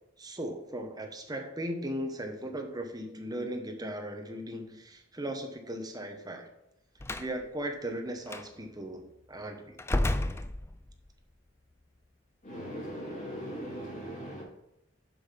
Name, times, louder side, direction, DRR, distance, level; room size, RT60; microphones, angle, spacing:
voice 1, 0.2-6.5 7.2-9.8, right 1 dB, 20° right, 4 dB, 1.1 m, -37 dB
Slam, 7.0-7.3 8.3-8.5 9.8-11.1, left 1 dB, 15° left, 0.4 m, -31 dB
voice 2, 12.4-14.4, equal, 40° left, -3 dB, 3.2 m, -39 dB
7.1 x 5.6 x 5.8 m, 0.84 s
head